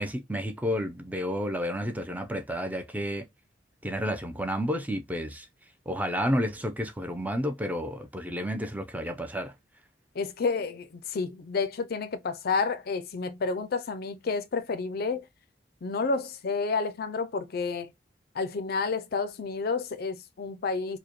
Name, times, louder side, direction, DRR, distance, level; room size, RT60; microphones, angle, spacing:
voice 1, 0.0-3.3 3.8-5.5 5.9-9.5, equal, 10° right, 0.5 m, -31 dB
voice 2, 10.1-15.2 15.8-17.9 18.4-21.0, left 4 dB, 60° left, 0.5 m, -30 dB
4.8 x 2.2 x 2.9 m
head